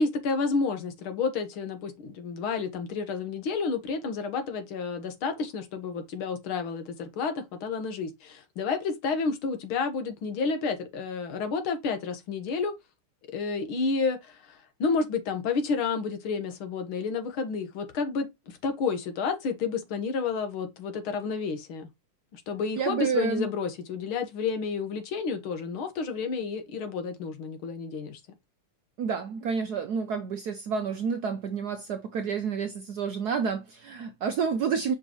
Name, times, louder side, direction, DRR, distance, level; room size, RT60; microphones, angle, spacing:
voice 1, 0.0-12.7 13.3-21.9 22.3-28.2, left 4 dB, 75° left, 2.0 m, -30 dB
voice 2, 22.8-23.5 29.0-34.9, right 6 dB, 70° right, 0.9 m, -29 dB
6.3 x 5.1 x 2.9 m
omnidirectional pair, 2.4 m